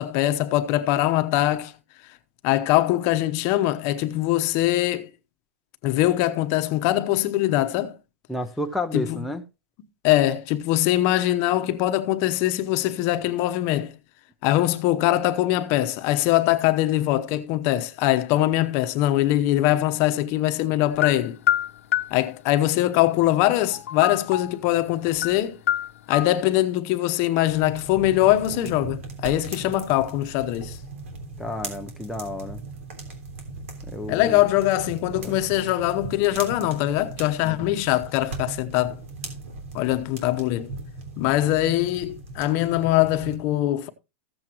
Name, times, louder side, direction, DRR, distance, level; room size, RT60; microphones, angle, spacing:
voice 1, 0.0-1.7 2.4-5.1 5.8-7.9 8.9-9.2 10.0-13.9 14.4-21.4 22.1-25.6 26.1-30.8 34.1-38.9 39.7-40.7 41.2-43.9, left 15 dB, 35° left, 0.9 m, -22 dB
voice 2, 8.3-9.4 31.4-32.6 33.8-34.4 35.2-35.3 37.4-37.7, left 1 dB, ahead, 0.5 m, -31 dB
sound 1, 21.0-22.2 23.7-24.6 25.1-25.4 25.7-26.3, left 11 dB, 85° left, 0.9 m, -25 dB
sound 2, 27.5-43.4, right 3 dB, 70° right, 3.3 m, -38 dB
15.0 x 7.6 x 3.0 m
supercardioid pair, 160°, 7 cm